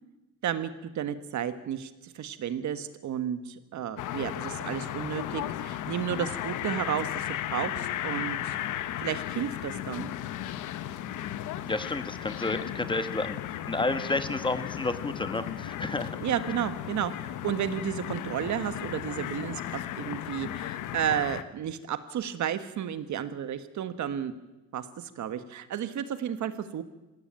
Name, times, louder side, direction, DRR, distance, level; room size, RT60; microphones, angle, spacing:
voice 1, 0.4-8.5 9.0-10.1 16.2-24.3 24.7-26.8, right 9 dB, 70° right, 11 dB, 1.5 m, -32 dB
sound 1, 4.0-21.4, left 12 dB, 85° left, 1.0 m, -35 dB
voice 2, 11.6-13.4 13.7-16.2, left 2 dB, 15° left, 10 dB, 1.3 m, -31 dB
19.0 x 16.0 x 8.9 m, 1.0 s
cardioid pair, 90°, 30 cm